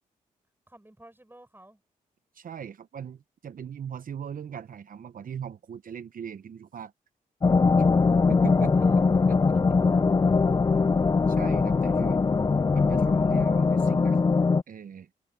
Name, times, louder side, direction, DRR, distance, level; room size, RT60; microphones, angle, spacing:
voice 1, 0.7-1.8 8.5-9.0 9.4-10.5 11.8-12.1 13.1-13.3, right 1 dB, 15° right, 6.9 m, -53 dB
voice 2, 2.3-6.9 8.3-9.0 9.3-9.4 11.3-12.2 12.7-14.2 14.7-15.1, right 8 dB, 60° right, 0.8 m, -39 dB
sound 1, 7.4-14.6, left 4 dB, 25° left, 0.4 m, -21 dB
open air
cardioid pair, 55°, 16 cm